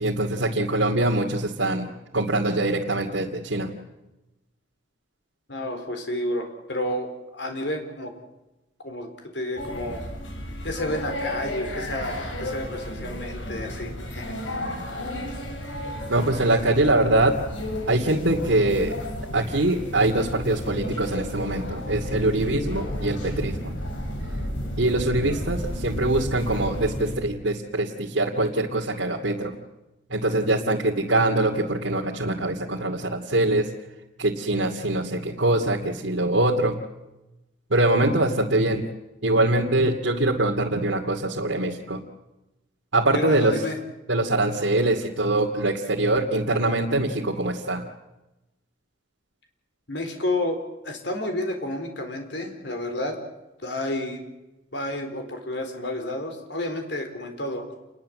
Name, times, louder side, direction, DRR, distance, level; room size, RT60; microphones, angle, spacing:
voice 1, 0.0-1.9 2.1-3.7 16.1-17.4 17.9-19.0 19.3-23.7 24.8-29.6 30.1-33.7 34.2-36.8 37.7-38.9 39.2-42.0 42.9-43.6 44.1-47.9, right 2 dB, 85° right, -2 dB, 2.5 m, -23 dB
voice 2, 5.5-8.1 8.8-10.0 10.6-14.4 43.1-43.8 49.9-50.6 50.8-53.2 53.6-54.2 54.7-57.6, left 1 dB, 65° left, 5 dB, 4.2 m, -30 dB
sound 1, 9.6-27.2, equal, 80° left, 6.9 m, -32 dB
29.0 x 21.0 x 7.8 m, 0.99 s
head